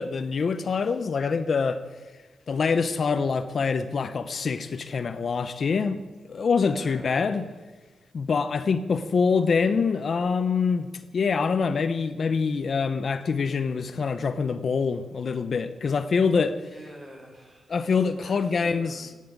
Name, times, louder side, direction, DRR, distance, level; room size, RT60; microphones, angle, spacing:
voice 1, 0.0-1.8 2.5-6.0 6.3-7.4 8.1-10.9 11.1-16.6 17.7-19.1, left 5 dB, 50° left, 0.7 m, -25 dB
voice 2, 6.7-7.6 16.6-17.8 18.2-19.2, right 1 dB, 25° right, 6.3 m, -46 dB
16.0 x 9.4 x 8.9 m
wide cardioid pair, 135°, 0 cm